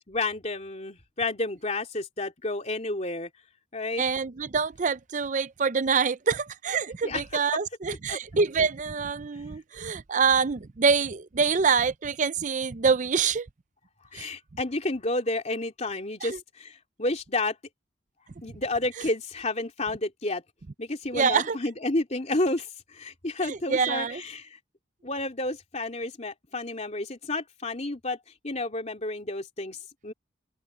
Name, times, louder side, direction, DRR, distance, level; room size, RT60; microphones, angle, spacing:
voice 1, 0.0-3.3 3.7-4.0 7.0-7.2 7.5-7.6 8.1-8.2 14.1-17.6 18.4-20.4 20.8-24.6 25.0-28.2 28.4-30.1, left 2 dB, 35° left, 3.0 m, -31 dB
voice 2, 4.0-13.5 14.1-14.3 16.2-16.4 21.1-21.6 23.4-24.2, right 5 dB, 40° right, 0.5 m, -26 dB
open air
head